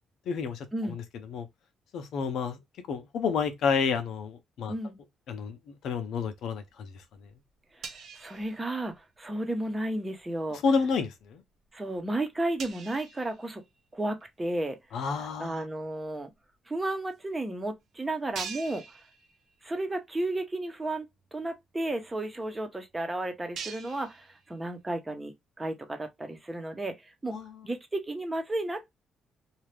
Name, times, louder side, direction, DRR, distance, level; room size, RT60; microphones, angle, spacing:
voice 1, 0.3-1.0 1.3-1.5 1.9-2.6 2.9-4.7 5.3-5.6 5.8-6.9 10.5-11.4 14.9-15.6 27.3-27.5, left 5 dB, 75° left, 0.8 m, -30 dB
sound 1, 7.5-9.3 9.6-9.8 10.3-10.6 11.2-11.3 11.7-11.8 11.9-12.0 12.6-14.2 14.8-14.9 16.0-16.1 16.3-16.4 17.1-17.2 17.6-17.7 18.3-19.8 20.1-20.3 20.7-20.8 21.0-24.9, right 6 dB, 70° right, 0.8 m, -45 dB
voice 2, 7.7-10.6 11.7-13.6 13.9-16.3 16.7-19.0 19.6-21.1 21.3-27.4 27.6-29.0, right 1 dB, 20° right, 0.9 m, -33 dB
2.8 x 2.4 x 3.3 m
cardioid pair, 90°, 0 cm